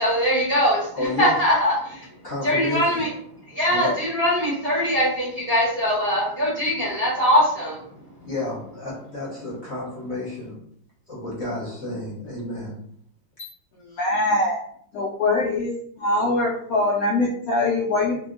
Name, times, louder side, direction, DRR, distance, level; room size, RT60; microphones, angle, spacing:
voice 1, 0.0-2.1 2.4-3.1 3.5-7.8, equal, 45° right, -7 dB, 0.8 m, -22 dB
voice 2, 0.9-1.4 2.2-3.0 3.7-4.0 8.2-10.6 11.1-12.8 13.4-13.5, left 2 dB, 45° left, -7 dB, 1.0 m, -31 dB
voice 3, 13.9-14.6 14.9-18.2, left 2 dB, 80° left, -4 dB, 0.8 m, -23 dB
2.8 x 2.6 x 2.5 m, 0.64 s
omnidirectional pair, 2.1 m